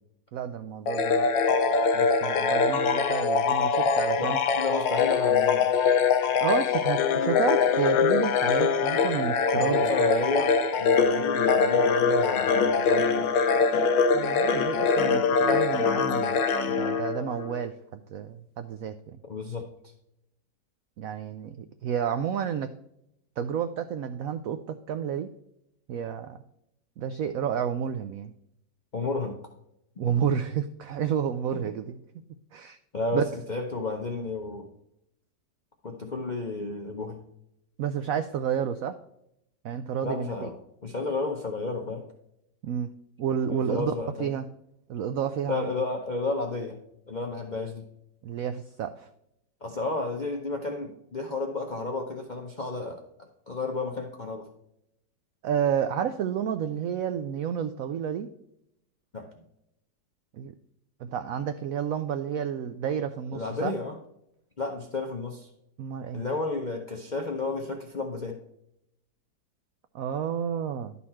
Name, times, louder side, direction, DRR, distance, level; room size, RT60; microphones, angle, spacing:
voice 1, 0.3-1.3 1.9-4.4 6.4-9.9 13.7-16.4 16.8-19.2 21.0-22.7 23.4-25.3 25.9-26.4 27.0-28.3 30.0-32.0 32.5-32.8 33.1-33.2 37.8-39.0 39.6-40.5 42.6-42.9 43.2-43.9 44.2-44.5 44.9-45.6 48.2-49.1 55.4-58.3 60.3-60.5 61.0-63.7 65.8-66.2 69.9-70.9, right 8 dB, 80° right, 9 dB, 0.7 m, -30 dB
sound 1, 0.9-17.6, left 5 dB, 90° left, 1.4 m, -23 dB
voice 2, 4.2-5.7 9.5-13.3 19.3-19.6 28.9-29.4 32.9-34.7 35.8-37.2 40.0-40.5 40.8-42.1 43.5-44.3 45.5-46.8 47.1-47.8 49.6-53.0 53.5-54.5 59.1-59.3 63.3-64.0 64.6-65.5 66.1-68.4, left 3 dB, 50° left, 2 dB, 0.5 m, -32 dB
11.0 x 4.2 x 4.2 m, 0.80 s
omnidirectional pair, 2.0 m